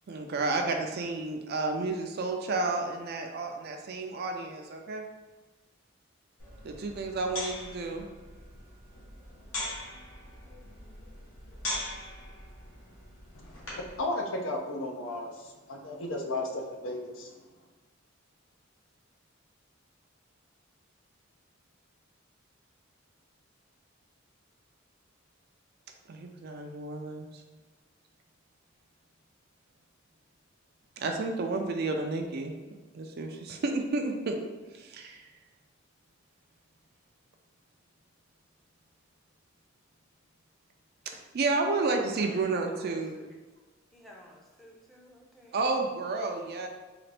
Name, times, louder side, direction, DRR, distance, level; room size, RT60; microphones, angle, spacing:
voice 1, 0.1-5.0 6.6-8.1 26.1-27.3 31.0-32.5 32.9-34.4 34.7-35.2 41.3-43.2 45.5-46.7, right 3 dB, 50° right, 4 dB, 0.4 m, -31 dB
sound 1, 6.4-14.0, left 1 dB, 85° left, 1.2 m, -41 dB
voice 2, 13.4-17.3, left 1 dB, 70° left, 2 dB, 0.6 m, -35 dB
voice 3, 41.9-43.4 43.9-45.6, left 1 dB, ahead, -3 dB, 0.6 m, -53 dB
3.9 x 2.4 x 3.3 m, 1.2 s
head